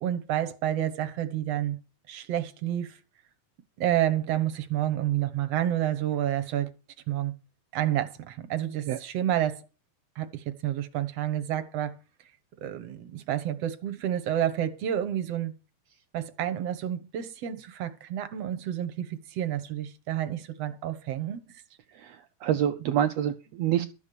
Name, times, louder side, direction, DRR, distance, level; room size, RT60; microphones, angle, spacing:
voice 1, 0.0-1.8 2.1-3.0 3.8-6.7 7.1-7.3 7.7-9.7 10.2-12.0 12.6-15.5 16.1-21.6, right 11 dB, 60° right, 1.9 m, -29 dB
voice 2, 21.9-23.9, right 10 dB, 80° right, 1.5 m, -27 dB
13.0 x 7.2 x 6.8 m
omnidirectional pair, 3.8 m